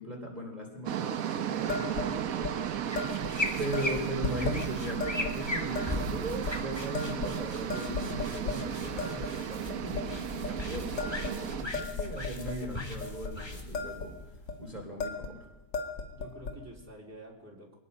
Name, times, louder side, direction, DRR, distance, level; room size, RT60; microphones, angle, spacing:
voice 1, 0.0-2.6 3.6-14.2 14.6-15.5, right 1 dB, 25° right, -1 dB, 3.4 m, -38 dB
sound 1, 0.9-11.6, right 10 dB, 60° right, 1.2 m, -35 dB
sound 2, 1.7-2.1 2.4-2.6 2.9-3.3 3.7-4.6 5.0-5.3 5.7-6.1 6.4-6.5 6.9-7.4 7.7-8.6 9.0-9.3 9.7-10.0 10.4-10.6 11.0-12.6 13.0-13.3 13.6-14.1 14.3-14.6 15.0-15.3 15.6-16.5, left 4 dB, 80° left, 2.7 m, -35 dB
sound 3, 2.8-14.8, left 1 dB, 15° left, 2.0 m, -39 dB
voice 2, 2.9-4.3 12.0-12.3 16.1-17.7, equal, 10° right, -3 dB, 3.9 m, -49 dB
24.5 x 20.0 x 5.5 m, 1.0 s
omnidirectional pair, 1.9 m